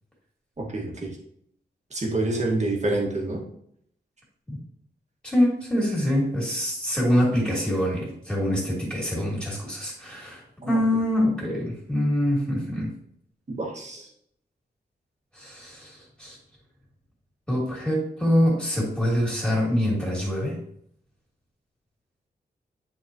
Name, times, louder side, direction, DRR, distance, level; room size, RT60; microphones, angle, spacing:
voice 1, 0.6-1.2 1.9-3.4 10.6-10.8 13.5-14.1, right 2 dB, 40° right, -1 dB, 1.8 m, -27 dB
voice 2, 5.2-13.0 15.3-16.4 17.5-20.6, equal, 5° left, -4 dB, 2.8 m, -25 dB
10.0 x 4.6 x 3.0 m, 0.69 s
wide cardioid pair, 145°, 18 cm